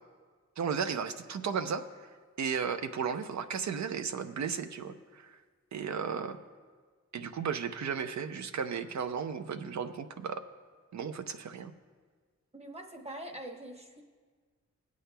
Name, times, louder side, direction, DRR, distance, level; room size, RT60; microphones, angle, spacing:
voice 1, 0.6-1.8 2.4-5.4 5.7-6.4 7.1-10.4 10.9-11.7, right 6 dB, 70° right, 9 dB, 0.6 m, -34 dB
voice 2, 12.5-14.0, right 1 dB, 20° right, 2 dB, 1.0 m, -43 dB
21.5 x 8.4 x 2.2 m, 1.5 s
wide cardioid pair, 165°, 29 cm